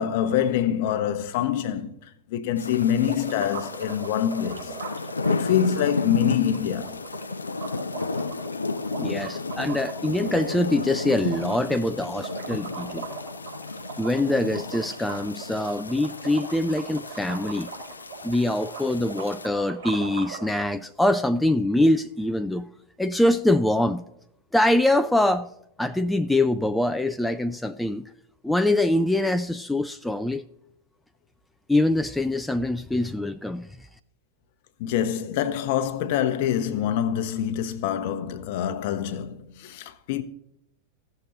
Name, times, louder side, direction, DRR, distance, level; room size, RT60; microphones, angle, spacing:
voice 1, 0.0-4.8 5.3-7.0 34.8-40.2, left 9 dB, 50° left, 0.8 m, -25 dB
sound 1, 2.6-19.5, left 3 dB, 75° left, 0.4 m, -33 dB
sound 2, 3.0-20.5, right 5 dB, 75° right, 3.5 m, -39 dB
voice 2, 9.0-13.0 14.0-17.7 18.2-22.7 23.0-24.0 24.5-25.5 25.8-28.1 28.4-30.4 31.7-33.7, left 1 dB, 5° left, 0.3 m, -24 dB
15.5 x 6.7 x 2.9 m
figure-of-eight pair, 90°, 0 cm